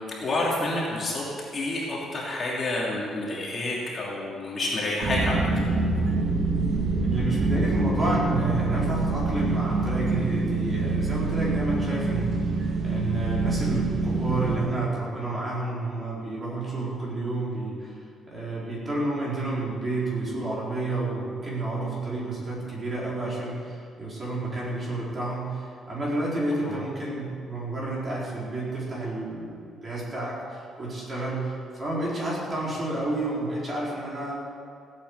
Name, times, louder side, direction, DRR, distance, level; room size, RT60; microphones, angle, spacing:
voice 1, 0.1-1.3 1.5-5.5 26.6-26.8, left 2 dB, 30° left, -4 dB, 2.8 m, -29 dB
sound 1, 5.0-14.6, right 3 dB, 45° right, 2.0 m, -25 dB
voice 2, 7.0-12.5 12.8-18.0 18.3-34.3, right 2 dB, 25° right, -6 dB, 4.3 m, -30 dB
16.5 x 8.5 x 8.1 m, 2.4 s
cardioid pair, 170°, 0 cm